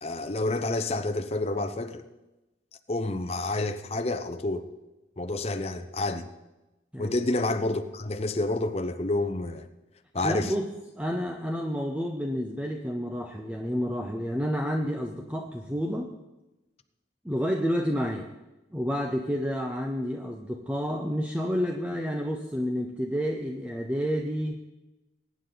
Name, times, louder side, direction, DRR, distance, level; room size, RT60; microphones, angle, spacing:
voice 1, 0.0-2.1 2.9-4.7 5.2-6.3 7.0-9.7 10.1-10.5, left 2 dB, 35° left, 0.8 m, -29 dB
voice 2, 10.2-10.7 11.0-16.1 17.2-18.3 18.7-24.6, equal, 5° right, 0.8 m, -29 dB
22.0 x 9.4 x 4.0 m
head